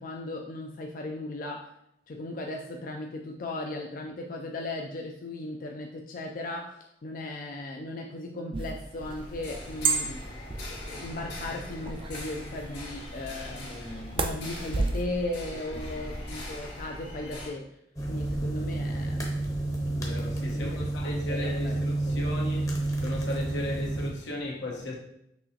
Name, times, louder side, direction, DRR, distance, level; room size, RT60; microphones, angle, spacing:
voice 1, 0.0-1.7 2.1-6.7 7.0-10.2 10.5-13.7 14.1-17.7 18.1-19.4 20.5-22.3, left 2 dB, 50° left, 0.4 m, -37 dB
sound 1, 8.5-15.0, right 4 dB, 30° right, 0.3 m, -33 dB
sound 2, 9.0-17.5, left 1 dB, 65° left, 1.7 m, -40 dB
voice 2, 13.7-14.2 15.7-15.8 19.9-22.7 23.0-24.9, left 1 dB, 90° left, 1.2 m, -36 dB
sound 3, 18.0-24.1, right 2 dB, 20° left, 0.7 m, -30 dB
6.0 x 2.9 x 2.8 m
head